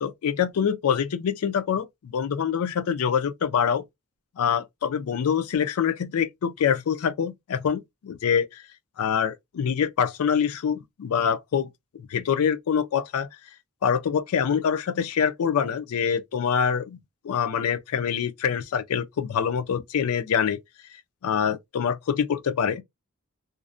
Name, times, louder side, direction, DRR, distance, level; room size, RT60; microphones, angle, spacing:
voice 1, 0.0-3.8 4.4-8.6 9.0-11.7 12.1-13.3 13.8-17.0 17.2-20.6 21.2-22.8, left 7 dB, 75° left, 0.4 m, -25 dB
2.5 x 2.0 x 2.5 m
head